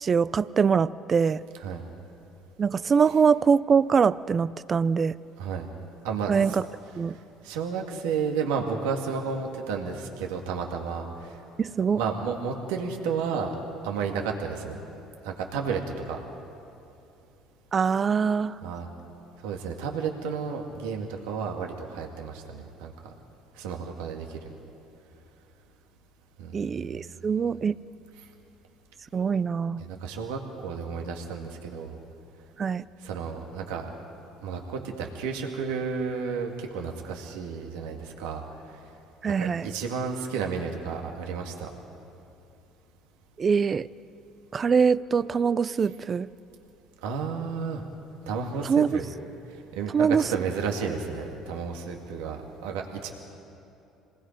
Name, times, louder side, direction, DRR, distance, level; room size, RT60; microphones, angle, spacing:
voice 1, 0.0-1.4 2.6-5.1 6.3-6.6 7.0-7.2 11.6-12.0 17.7-18.6 26.5-27.8 29.1-29.8 32.6-32.8 39.2-39.7 43.4-43.9 44.5-46.3 48.6-49.0 49.9-50.2, right 6 dB, 40° right, 17 dB, 0.5 m, -23 dB
voice 2, 6.0-6.6 7.1-11.4 11.8-13.5 13.8-16.2 18.6-18.9 19.4-23.1 23.5-24.4 26.4-27.3 29.8-32.0 33.0-33.9 34.4-38.9 39.3-41.7 47.0-47.8 48.2-49.1 49.5-53.1, right 5 dB, 85° right, 2 dB, 2.0 m, -32 dB
27.0 x 20.0 x 5.2 m, 2.9 s
supercardioid pair, 75°, 0 cm